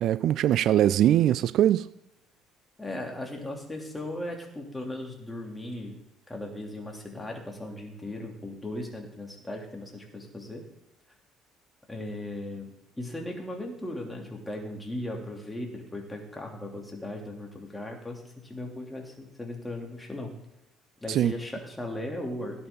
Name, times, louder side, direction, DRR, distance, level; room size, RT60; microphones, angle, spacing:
voice 1, 0.0-1.9 21.1-21.3, right 11 dB, 50° right, 0.3 m, -22 dB
voice 2, 2.8-6.0 6.3-10.6 11.9-20.3 21.0-22.7, left 1 dB, 10° left, 3.1 m, -37 dB
17.0 x 8.8 x 3.9 m
figure-of-eight pair, 55°, 0 cm